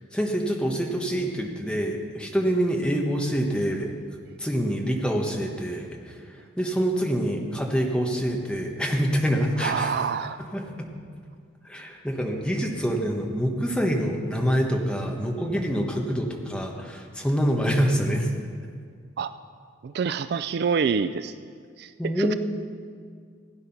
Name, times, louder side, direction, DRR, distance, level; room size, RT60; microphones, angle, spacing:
voice 1, 0.1-3.9 4.4-6.2 6.6-10.0 10.5-10.9 11.6-18.3 22.0-22.4, equal, 5° left, 0 dB, 1.2 m, -26 dB
voice 2, 9.6-10.4 19.2-19.3 19.8-21.3 21.8-21.9 22.2-22.3, right 6 dB, 55° right, 12 dB, 0.3 m, -26 dB
16.0 x 9.7 x 5.8 m, 2.1 s
head